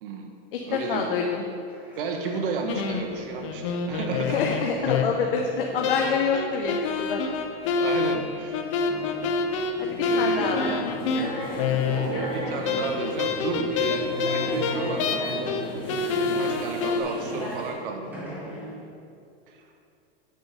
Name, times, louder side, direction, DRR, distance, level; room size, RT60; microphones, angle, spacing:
voice 1, 0.0-0.3 0.7-1.1 2.0-4.4 4.9-5.0 7.8-8.6 10.0-10.6 12.3-15.6 16.4-18.1 19.5-19.7, right 4 dB, 55° right, 4 dB, 1.2 m, -32 dB
voice 2, 0.5-1.4 4.2-7.2 9.8-10.7 16.2-16.5, left 6 dB, 55° left, 1 dB, 0.8 m, -27 dB
sound 1, 0.6-18.8, right 1 dB, 5° right, 1.3 m, -43 dB
sound 2, 2.7-5.4 5.8-12.3 12.6-15.6 15.9-17.0, left 5 dB, 30° left, 0.5 m, -27 dB
sound 3, 9.7-17.7, equal, 15° left, 1.8 m, -34 dB
8.3 x 6.0 x 5.2 m, 2.5 s
supercardioid pair, 170°, 32 cm